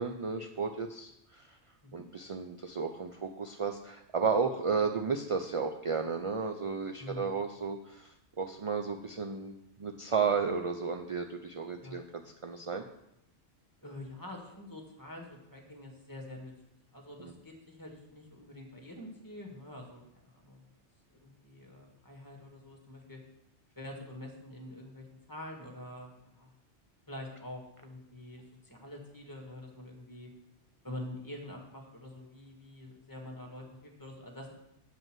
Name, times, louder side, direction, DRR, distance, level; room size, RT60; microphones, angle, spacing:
voice 1, 0.0-1.5 1.9-12.0 12.4-12.8 17.2-17.3, right 5 dB, 40° right, 5 dB, 0.4 m, -33 dB
voice 2, 7.0-7.4 11.8-12.0 13.8-16.5 16.9-20.0 20.3-20.6 21.1-23.2 23.7-26.5 27.1-30.3 30.8-34.5, left 1 dB, 15° left, 0 dB, 1.8 m, -46 dB
8.6 x 5.4 x 7.5 m, 0.83 s
omnidirectional pair, 1.2 m